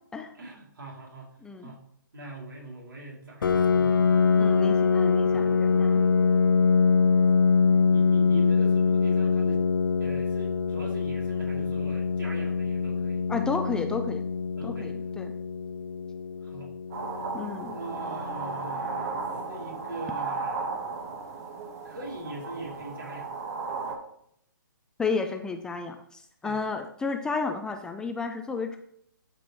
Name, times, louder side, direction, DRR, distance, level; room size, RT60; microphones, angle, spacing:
voice 1, 0.4-1.3 1.6-1.8 2.1-4.5 5.3-6.1 7.6-9.6 10.0-13.3 14.6-14.9 16.4-16.7 17.7-20.7 21.8-23.3 26.4-26.6, right 2 dB, 70° right, -1 dB, 2.7 m, -42 dB
voice 2, 1.4-1.7 4.4-6.0 13.3-14.2 14.6-15.3 17.3-17.7 25.0-28.8, left 4 dB, 5° left, 5 dB, 0.4 m, -32 dB
Piano, 3.4-18.8, left 5 dB, 75° left, 0.5 m, -24 dB
sound 1, 16.9-24.0, right 4 dB, 40° right, 1.3 m, -35 dB
11.5 x 4.5 x 3.0 m, 0.70 s
figure-of-eight pair, 135°, 11 cm